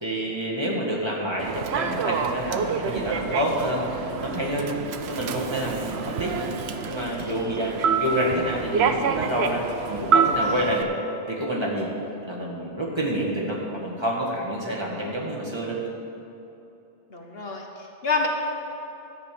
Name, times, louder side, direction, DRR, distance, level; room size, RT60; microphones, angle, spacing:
voice 1, 0.0-4.7 5.1-6.5 6.8-10.9 11.3-11.9 12.2-15.8, equal, 25° right, -4 dB, 1.8 m, -28 dB
Human voice / Subway metro underground, 1.4-10.8, right 6 dB, 70° right, 0.9 m, -27 dB
voice 2, 17.1-18.3, left 4 dB, 60° left, 1 dB, 1.2 m, -28 dB
12.5 x 5.3 x 8.4 m, 2.9 s
omnidirectional pair, 1.2 m